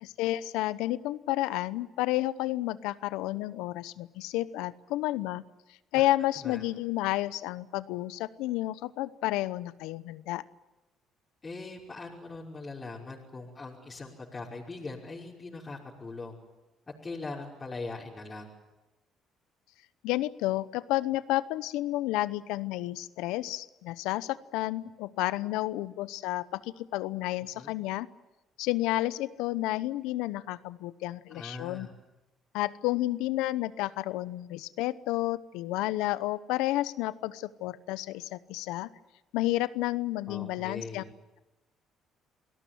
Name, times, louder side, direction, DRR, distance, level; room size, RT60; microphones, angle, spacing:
voice 1, 0.0-5.4 5.9-10.4 20.0-28.1 28.6-31.9 32.5-38.9 39.3-41.0, left 16 dB, 85° left, 16 dB, 0.9 m, -31 dB
voice 2, 11.4-16.4 17.0-18.5 27.5-27.7 31.3-31.9 40.3-41.1, left 3 dB, 30° left, -5 dB, 5.5 m, -41 dB
28.0 x 18.5 x 9.4 m, 1.0 s
supercardioid pair, 65°, 0 cm